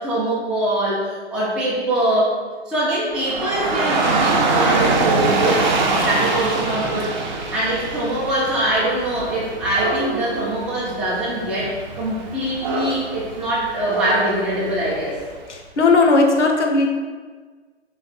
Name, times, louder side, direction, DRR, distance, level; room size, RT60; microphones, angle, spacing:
voice 1, 0.0-2.4 2.7-5.7 6.0-7.1 7.5-15.2, right 1 dB, 5° right, -8 dB, 0.4 m, -23 dB
Dog / Rain, 3.1-15.3, right 3 dB, 40° right, 0.6 m, -24 dB
voice 2, 15.5-16.9, left 3 dB, 75° left, 3 dB, 0.8 m, -16 dB
3.4 x 3.1 x 4.3 m, 1.4 s
figure-of-eight pair, 125°, 35 cm